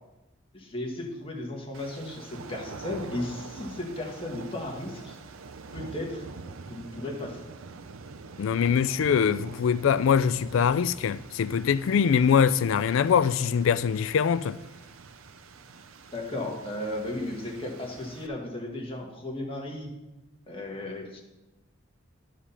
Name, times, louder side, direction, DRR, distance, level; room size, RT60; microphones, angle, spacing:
voice 1, 0.5-5.2 5.7-6.3 6.7-7.4 16.1-19.9 20.5-21.2, left 1 dB, 25° left, 1.6 m, -35 dB
sound 1, 1.7-18.3, right 4 dB, 85° right, 0.6 m, -45 dB
voice 2, 8.4-14.6, left 7 dB, 75° left, 0.3 m, -23 dB
11.0 x 5.0 x 5.7 m
head